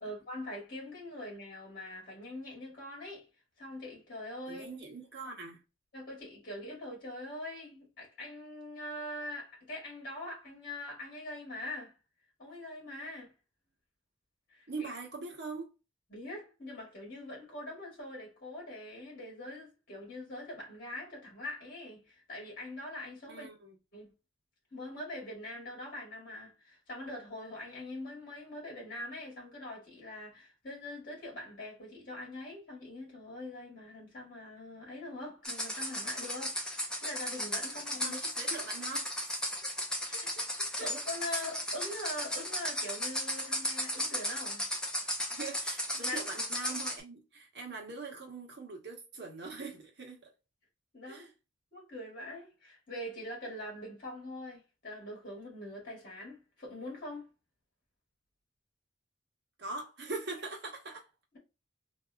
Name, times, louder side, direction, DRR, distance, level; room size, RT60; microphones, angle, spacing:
voice 1, 0.0-3.3 3.6-4.7 5.9-11.9 12.4-13.3 14.5-14.9 16.1-23.5 23.9-24.1 24.7-38.2 40.1-40.3 40.8-44.6 46.0-46.2 50.9-51.3 51.7-57.3, left 1 dB, 45° left, 1.8 m, -43 dB
voice 2, 4.5-5.6 14.7-15.7 23.3-23.8 38.0-39.4 40.1-40.2 40.8-40.9 41.3-41.4 45.3-50.3 51.1-51.3 59.6-61.1, right 3 dB, 55° right, 1.2 m, -42 dB
sound 1, 35.4-47.0, equal, 5° left, 0.6 m, -35 dB
3.5 x 2.8 x 2.3 m
head